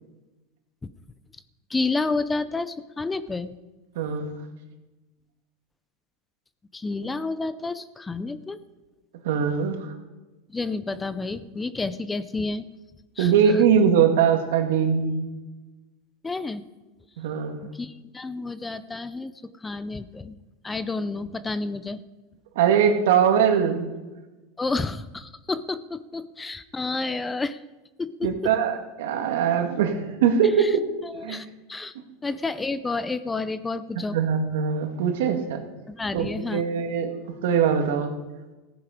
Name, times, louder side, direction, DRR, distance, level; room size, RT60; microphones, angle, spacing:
voice 1, 1.7-3.5 6.7-8.6 10.5-12.7 13.2-13.6 16.2-16.6 17.7-20.4 20.6-22.0 24.6-27.6 28.0-28.5 30.6-31.9 32.2-34.2 35.9-36.6, left 3 dB, 10° left, 14 dB, 0.6 m, -30 dB
voice 2, 4.0-4.3 9.2-9.9 13.2-15.2 17.2-17.6 22.6-23.9 28.2-30.9 31.2-31.4 34.1-35.6 36.1-38.1, right 7 dB, 80° right, 5 dB, 1.9 m, -22 dB
15.0 x 9.6 x 5.1 m, 1.2 s
supercardioid pair, 130°, 0 cm